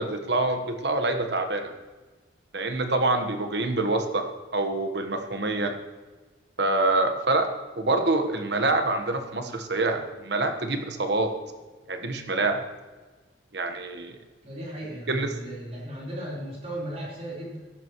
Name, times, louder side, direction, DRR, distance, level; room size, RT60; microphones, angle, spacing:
voice 1, 0.0-1.7 2.5-4.3 4.5-5.7 6.6-7.5 7.8-11.3 11.9-12.6 13.5-14.1 15.1-15.3, right 2 dB, 70° right, 6 dB, 1.3 m, -26 dB
voice 2, 14.4-17.6, right 1 dB, 35° right, -5 dB, 4.1 m, -36 dB
15.0 x 12.0 x 3.1 m, 1.3 s
head